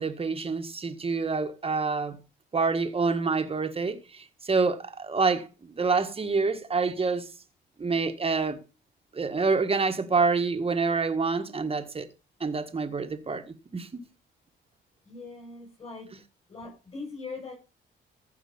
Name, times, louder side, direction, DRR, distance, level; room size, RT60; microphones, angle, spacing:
voice 1, 0.0-2.2 2.5-7.3 7.8-8.6 9.1-12.1 12.4-14.1, right 4 dB, 30° right, 1.7 m, -27 dB
voice 2, 15.0-16.1 16.5-17.5, left 3 dB, 30° left, 6.4 m, -41 dB
15.0 x 5.6 x 5.4 m
cardioid pair, 90°, 20 cm